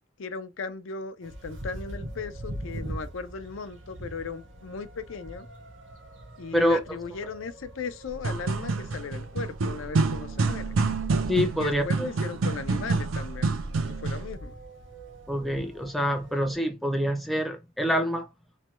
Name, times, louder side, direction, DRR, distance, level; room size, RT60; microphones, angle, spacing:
voice 1, 0.2-5.5 6.4-10.7 11.6-13.5 13.8-14.6, left 5 dB, 75° left, 0.5 m, -37 dB
sound 1, 1.2-16.6, right 1 dB, 70° right, 0.9 m, -43 dB
sound 2, 8.1-14.3, right 3 dB, 90° right, 0.5 m, -28 dB
voice 2, 11.3-12.1 15.3-18.3, equal, ahead, 0.5 m, -26 dB
3.1 x 2.2 x 3.0 m
head